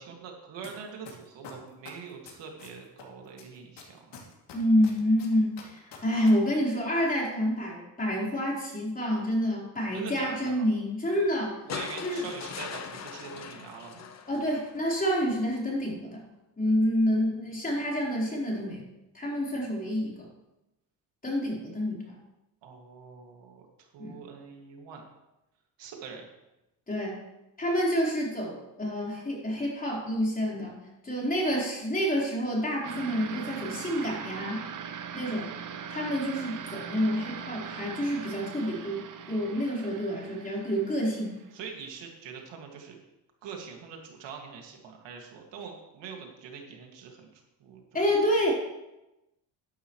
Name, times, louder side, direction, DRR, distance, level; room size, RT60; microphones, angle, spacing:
voice 1, 0.0-4.1 9.9-10.7 11.6-14.1 22.6-25.0 25.8-26.2 41.5-43.0 43.4-48.0, right 6 dB, 70° right, 2 dB, 2.3 m, -44 dB
sound 1, 0.6-0.7 1.1-3.0 3.4-6.3 6.6-6.7, left 8 dB, 60° left, 2.8 m, -46 dB
voice 2, 4.5-11.5 12.0-12.3 14.3-16.3 16.6-18.8 19.1-20.2 21.2-22.2 24.0-24.2 26.9-27.2 27.6-30.7 31.0-34.6 35.1-35.5 35.9-41.4 47.9-48.5, equal, 20° left, -4 dB, 4.2 m, -28 dB
sound 2, 11.7-15.0 16.3-16.4, left 7 dB, 35° left, 0.9 m, -40 dB
sound 3, 32.8-41.9, right 7 dB, 45° right, 1.0 m, -41 dB
12.5 x 11.0 x 3.2 m, 0.95 s
cardioid pair, 110°, 45 cm